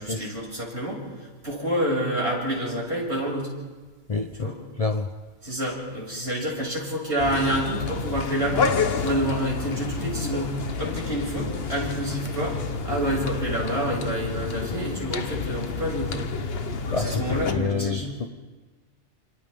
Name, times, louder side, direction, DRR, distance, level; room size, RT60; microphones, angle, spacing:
voice 1, 0.0-3.5 4.4-4.6 5.4-16.3 16.8-18.1, right 1 dB, 60° right, 6.9 m, -28 dB
voice 2, 4.1-4.5 4.8-5.1 16.9-18.3, left 4 dB, 35° left, 0.6 m, -28 dB
sound 1, 7.2-17.5, left 5 dB, 55° left, 1.2 m, -29 dB
29.5 x 26.5 x 3.6 m
omnidirectional pair, 1.3 m